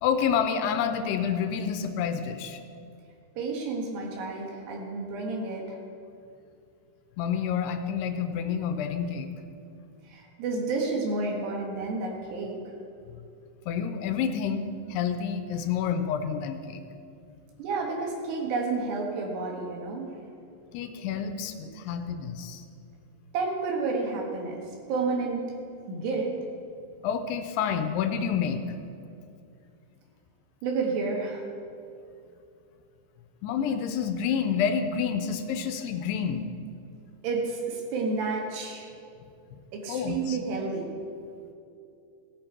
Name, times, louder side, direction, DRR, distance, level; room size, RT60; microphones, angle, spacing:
voice 1, 0.0-2.6 7.2-9.3 13.7-14.6 14.9-16.8 20.7-22.6 27.0-28.6 33.4-36.5 39.5-39.6 39.9-40.4, left 7 dB, 85° left, 7 dB, 2.7 m, -28 dB
voice 2, 3.4-5.8 10.1-12.6 17.6-20.1 23.3-24.6 24.9-25.5 25.9-26.4 30.6-31.5 37.2-38.9 39.7-40.9, right 3 dB, 80° right, 0 dB, 3.8 m, -30 dB
17.0 x 8.9 x 4.4 m, 2.6 s
omnidirectional pair, 4.9 m